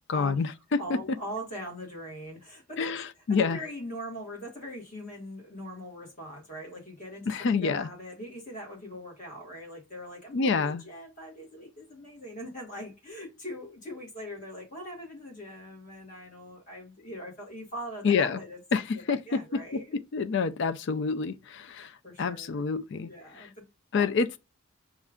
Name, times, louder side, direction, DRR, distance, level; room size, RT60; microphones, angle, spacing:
voice 1, 0.1-1.2 2.8-3.6 7.3-7.9 10.3-10.8 18.0-18.4 18.7-19.8 20.1-21.9 22.2-23.1 23.4-23.5 23.9-24.3, left 5 dB, 55° left, 0.4 m, -27 dB
voice 2, 0.8-18.6 18.9-20.0 22.0-22.6 22.9-23.6 23.9-24.1, equal, 35° left, 1.6 m, -41 dB
5.3 x 2.4 x 3.5 m
head